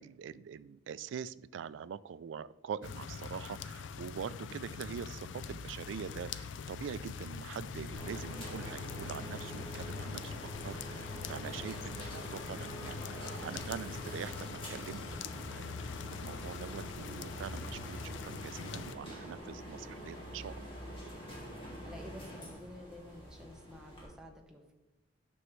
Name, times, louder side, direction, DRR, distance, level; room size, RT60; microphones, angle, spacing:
voice 1, 0.0-15.6 16.1-20.7, right 7 dB, 75° right, 16 dB, 0.3 m, -44 dB
sound 1, 2.8-19.0, left 5 dB, 75° left, 0.4 m, -43 dB
sound 2, 7.9-24.1, right 1 dB, 25° left, 2.1 m, -46 dB
Wind instrument woodwind instrument, 15.9-22.1, left 3 dB, 50° right, 1.5 m, -58 dB
voice 2, 21.8-24.7, left 1 dB, 5° right, 0 dB, 0.9 m, -50 dB
9.5 x 6.2 x 3.1 m, 1.1 s
head